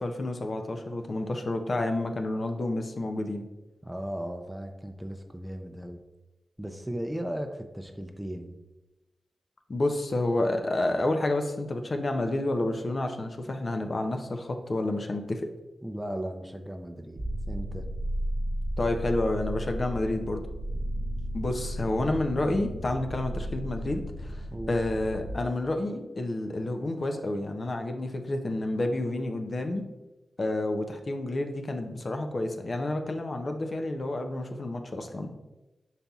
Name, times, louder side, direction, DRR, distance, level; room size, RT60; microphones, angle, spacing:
voice 1, 0.0-3.5 9.7-15.5 18.8-20.4 21.3-29.9 30.4-35.3, left 2 dB, 50° left, 5 dB, 0.5 m, -29 dB
voice 2, 3.8-6.0 6.6-8.6 15.8-17.9 24.5-24.8, right 1 dB, 10° right, 5 dB, 0.5 m, -36 dB
sound 1, 17.2-25.3, equal, 70° right, 0.9 m, -34 dB
5.3 x 4.0 x 2.3 m, 1.0 s
cardioid pair, 55°, 0 cm